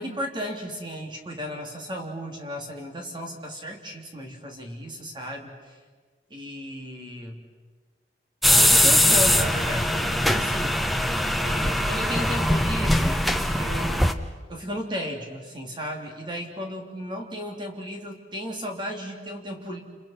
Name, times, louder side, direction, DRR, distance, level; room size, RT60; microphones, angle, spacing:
voice 1, 0.0-5.8 6.3-7.4 8.5-11.0 11.4-13.3 13.6-14.1 14.5-19.8, equal, 25° right, 1 dB, 3.2 m, -34 dB
sound 1, 8.4-14.1, left 1 dB, ahead, 0.9 m, -21 dB
29.0 x 29.0 x 5.8 m, 1.4 s
head